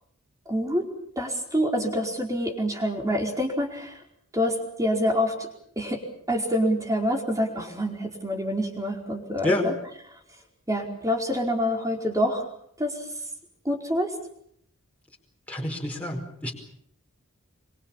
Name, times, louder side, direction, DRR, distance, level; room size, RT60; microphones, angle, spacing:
voice 1, 0.5-0.8 1.2-4.0 4.3-5.5 5.8-6.0 6.3-9.7 10.1-10.2 10.7-12.5 12.8-13.1 13.6-14.1, equal, 15° right, 2 dB, 4.7 m, -26 dB
voice 2, 15.5-16.5, left 1 dB, 5° left, -1 dB, 4.9 m, -27 dB
25.0 x 25.0 x 7.3 m, 0.68 s
head